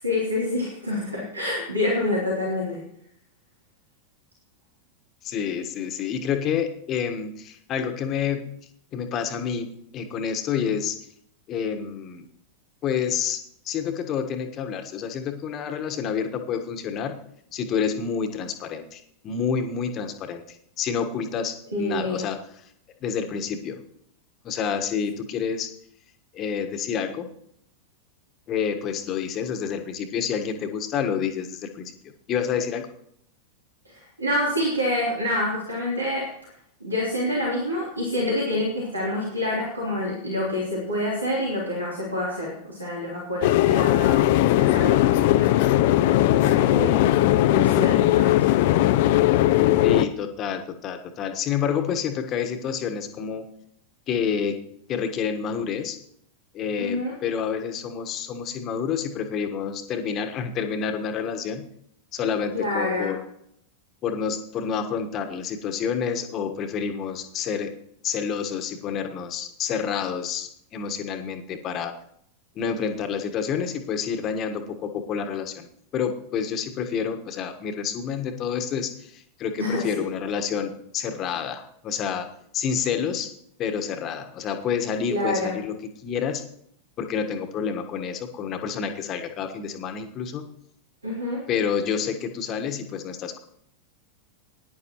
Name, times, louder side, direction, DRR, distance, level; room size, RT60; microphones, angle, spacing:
voice 1, 0.0-2.8 21.7-22.2 33.8-36.3 36.8-45.5 46.4-47.1 47.4-48.5 56.8-57.1 62.5-63.1 79.6-79.9 85.1-85.5 91.0-91.4, left 1 dB, 80° right, -4 dB, 3.2 m, -27 dB
voice 2, 5.2-8.5 8.9-10.9 11.5-12.3 12.8-13.4 13.6-17.2 17.5-22.4 23.0-23.8 24.4-25.7 26.3-27.3 28.5-31.9 32.3-32.9 49.8-53.5 54.1-54.6 54.9-56.0 56.5-61.6 62.1-63.2 64.0-67.7 68.0-71.9 72.5-75.7 75.9-82.3 82.5-83.3 83.6-85.7 86.0-86.4 87.0-90.5 91.5-93.4, left 7 dB, 35° left, 6 dB, 1.4 m, -28 dB
sound 1, 43.4-50.1, left 14 dB, 50° left, 0.5 m, -19 dB
19.0 x 10.5 x 3.1 m, 0.71 s
figure-of-eight pair, 90°, 0 cm